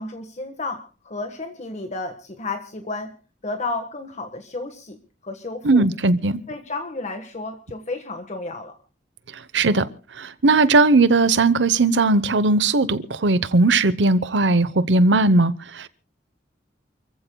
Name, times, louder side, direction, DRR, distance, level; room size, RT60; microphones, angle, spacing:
voice 1, 0.0-3.1 3.4-5.8 6.5-8.7, left 3 dB, 40° left, 1.5 m, -32 dB
voice 2, 5.6-6.4 9.5-9.9 10.2-15.9, right 3 dB, 85° right, 0.9 m, -18 dB
29.0 x 15.0 x 2.3 m
head